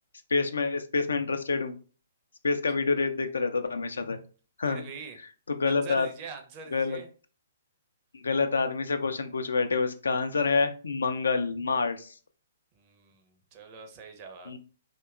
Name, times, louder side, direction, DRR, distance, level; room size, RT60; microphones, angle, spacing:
voice 1, 0.3-1.8 2.4-4.2 4.6-4.8 5.5-6.1 6.7-7.0 8.1-12.1 14.5-14.6, left 4 dB, 75° left, 8 dB, 0.3 m, -27 dB
voice 2, 4.6-5.2 5.7-7.1 12.7-14.5, right 5 dB, 35° right, 5 dB, 0.5 m, -44 dB
2.7 x 2.1 x 2.3 m, 0.38 s
figure-of-eight pair, 125°, 0 cm